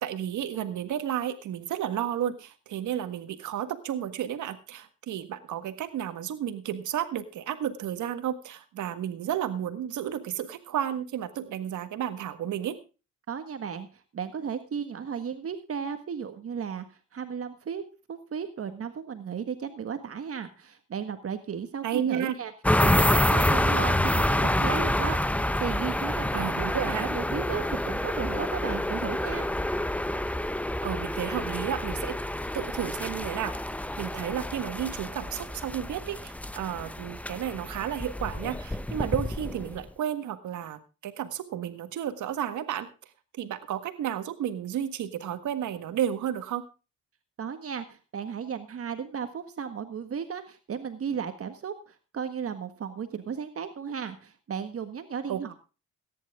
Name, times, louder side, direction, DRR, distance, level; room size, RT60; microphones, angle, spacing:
voice 1, 0.0-12.8 21.8-22.3 26.3-27.1 30.8-32.2 32.5-33.5 34.0-42.9 43.4-46.6 55.3-55.5, right 10 dB, 75° right, 10 dB, 1.6 m, -32 dB
voice 2, 13.3-13.9 14.1-16.8 17.1-22.5 22.8-26.7 27.0-29.4 47.4-55.5, right 7 dB, 50° right, 8 dB, 1.6 m, -35 dB
sound 1, 22.6-39.9, left 1 dB, 5° left, 0.8 m, -28 dB
18.0 x 10.5 x 3.6 m, 0.33 s
cardioid pair, 90°, 30 cm